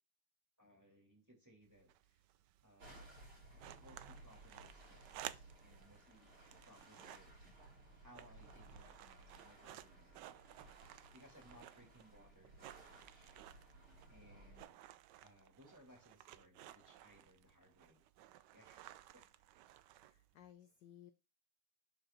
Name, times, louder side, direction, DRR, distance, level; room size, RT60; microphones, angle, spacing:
voice 1, 0.6-2.2 2.6-3.2 3.5-7.3 7.8-10.7 11.1-13.4 14.1-14.8 15.2-18.0 18.5-19.2 20.0-20.1, equal, 10° right, 2.7 m, -65 dB
sound 1, 1.6-20.5, right 13 dB, 85° right, 0.9 m, -57 dB
sound 2, 2.8-14.6, right 2 dB, 65° right, 4.6 m, -60 dB
voice 2, 19.8-21.1, left 11 dB, 70° left, 1.1 m, -61 dB
12.0 x 4.4 x 3.8 m
omnidirectional pair, 2.4 m